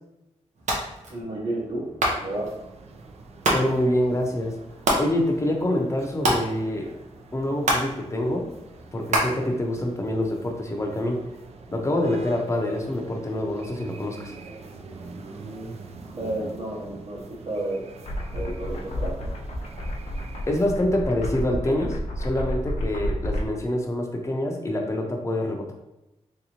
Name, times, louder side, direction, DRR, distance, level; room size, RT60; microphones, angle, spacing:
sound 1, 0.6-10.3, right 1 dB, 90° right, 0.8 m, -30 dB
voice 1, 1.1-1.9 2.2-2.5 16.2-17.8 18.3-19.3, right 1 dB, 45° right, -6 dB, 0.9 m, -31 dB
sound 2, 2.2-20.8, right 3 dB, 65° right, 0.4 m, -45 dB
voice 2, 3.5-4.5 5.0-6.9 7.3-8.5 8.9-11.2 11.7-14.3 20.5-25.7, left 1 dB, 25° left, 2 dB, 0.6 m, -26 dB
sound 3, 18.1-23.5, equal, 70° left, 0.7 m, -31 dB
3.4 x 2.8 x 2.8 m, 0.93 s
wide cardioid pair, 135°, 12 cm